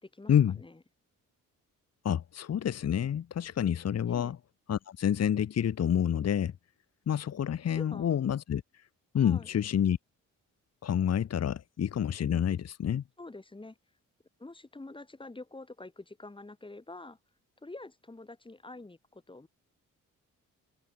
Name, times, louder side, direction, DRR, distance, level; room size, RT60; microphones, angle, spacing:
voice 1, 0.0-0.8 4.1-4.3 7.7-8.1 9.1-9.5 13.2-13.8 14.4-17.2 17.6-19.5, left 2 dB, 15° left, 3.3 m, -46 dB
voice 2, 2.0-4.4 4.7-6.5 7.1-8.6 9.1-10.0 10.8-13.0, left 9 dB, 50° left, 1.3 m, -28 dB
cardioid pair, 95°, 32 cm